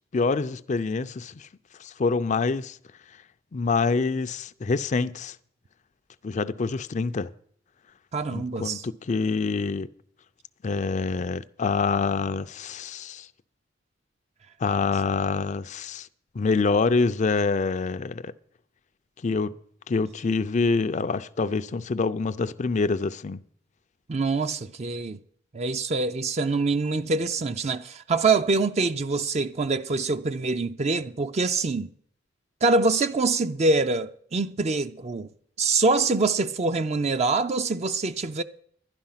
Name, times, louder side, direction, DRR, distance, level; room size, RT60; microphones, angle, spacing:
voice 1, 0.1-1.5 1.8-2.8 3.5-5.4 6.2-7.3 8.3-9.9 10.6-13.3 14.6-16.1 16.3-18.3 19.2-19.6 19.9-23.4, left 4 dB, 40° left, 0.4 m, -26 dB
voice 2, 8.1-8.8 24.1-25.2 25.5-31.9 32.6-35.3 35.6-38.4, right 3 dB, 35° right, 0.5 m, -25 dB
11.5 x 11.0 x 5.7 m
head